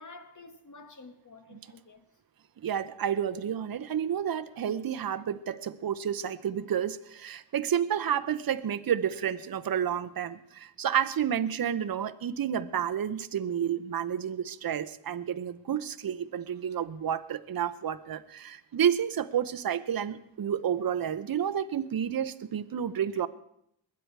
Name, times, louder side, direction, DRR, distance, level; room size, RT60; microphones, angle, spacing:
voice 1, 0.0-2.0, left 3 dB, 40° left, 1.4 m, -49 dB
voice 2, 2.6-23.3, right 9 dB, 50° right, 0.7 m, -30 dB
21.0 x 9.4 x 4.6 m
wide cardioid pair, 100°, 44 cm